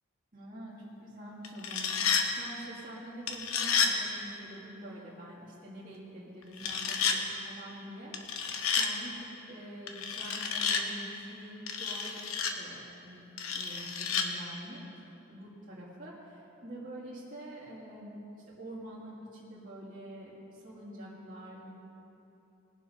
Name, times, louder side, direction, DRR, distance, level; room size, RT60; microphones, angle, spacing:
voice 1, 0.3-8.1 8.8-13.3 13.5-14.8 15.3-18.2 18.6-21.8, right 1 dB, 40° right, -8 dB, 2.0 m, -46 dB
sound 1, 1.4-2.3 3.3-3.9 6.6-7.2 8.1-8.9 9.9-10.8 11.7-12.5 13.4-14.3, left 6 dB, 85° left, 1.1 m, -30 dB
20.0 x 7.3 x 5.5 m, 3.0 s
head